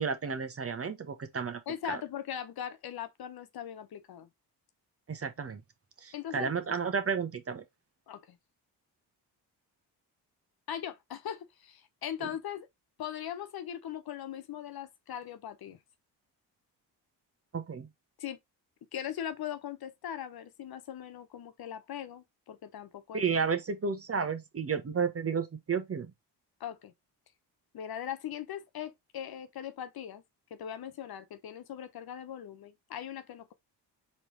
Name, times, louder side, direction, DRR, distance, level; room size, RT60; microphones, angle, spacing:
voice 1, 0.0-1.6 1.9-2.0 5.1-5.6 6.0-7.6 17.5-17.9 23.1-26.1, right 6 dB, 30° right, 1.0 m, -32 dB
voice 2, 1.7-4.3 6.1-6.5 8.1-8.4 10.7-12.7 13.0-15.8 18.2-18.4 18.9-23.5 26.6-26.9 27.7-30.2 30.5-33.5, left 10 dB, 55° left, 0.8 m, -40 dB
4.2 x 3.2 x 3.0 m
supercardioid pair, 70°, 43 cm